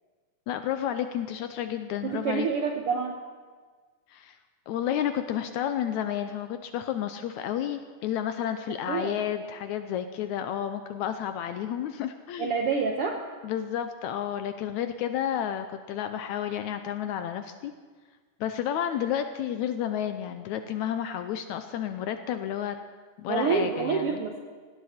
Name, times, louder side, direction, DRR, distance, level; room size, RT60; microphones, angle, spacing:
voice 1, 0.5-2.5 4.1-4.4 4.7-12.6 13.4-17.7 18.4-22.8 23.2-24.2, left 10 dB, 75° left, 9 dB, 1.8 m, -31 dB
voice 2, 2.0-3.2 8.7-9.1 12.4-13.2 23.3-24.3, right 5 dB, 70° right, 3 dB, 1.4 m, -27 dB
18.0 x 17.0 x 4.3 m, 1.5 s
omnidirectional pair, 3.8 m